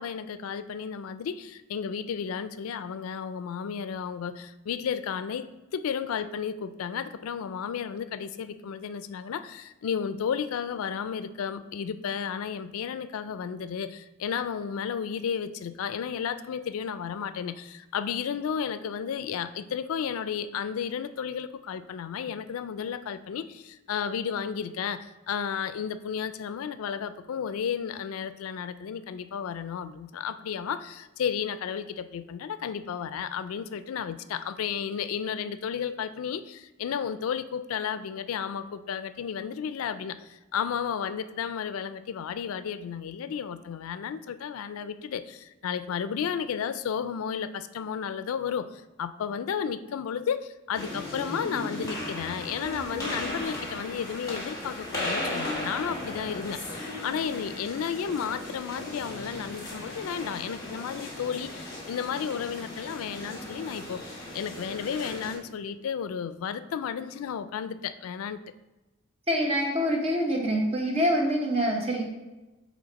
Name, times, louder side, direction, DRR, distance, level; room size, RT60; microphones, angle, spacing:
voice 1, 0.0-68.4, left 7 dB, 85° left, 13 dB, 0.4 m, -33 dB
sound 1, 50.7-65.3, left 1 dB, 15° left, 1.3 m, -36 dB
voice 2, 69.3-72.1, equal, 30° right, 1 dB, 0.9 m, -25 dB
7.6 x 3.2 x 4.0 m, 1.1 s
head